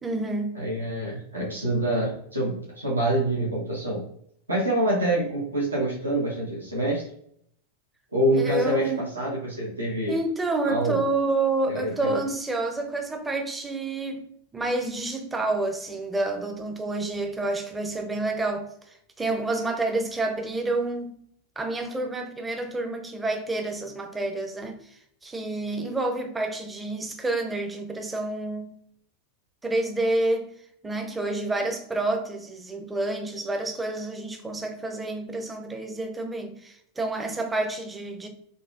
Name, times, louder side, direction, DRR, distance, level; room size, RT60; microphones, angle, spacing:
voice 1, 0.0-0.6 8.4-9.0 10.1-14.3 14.5-21.1 21.6-28.7 29.6-30.5 30.8-38.3, right 2 dB, 10° right, 0.5 m, -29 dB
voice 2, 0.5-4.0 4.5-7.0 8.1-8.9 9.1-10.1 10.7-11.0 11.7-12.2, right 1 dB, 75° right, 0.8 m, -26 dB
3.9 x 2.4 x 2.5 m
figure-of-eight pair, 90°, 0 cm